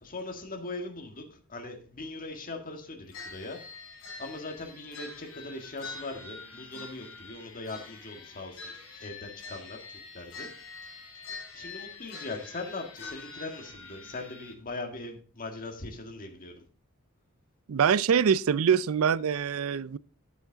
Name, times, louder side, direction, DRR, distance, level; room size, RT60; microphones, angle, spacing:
voice 1, 0.0-3.6 4.2-9.8 10.1-10.5 11.5-16.6, left 2 dB, 40° left, 1.8 m, -40 dB
sound 1, 3.1-14.5, left 4 dB, 70° left, 3.8 m, -45 dB
voice 2, 17.7-20.0, right 7 dB, 70° right, 0.4 m, -24 dB
10.5 x 8.2 x 3.9 m
head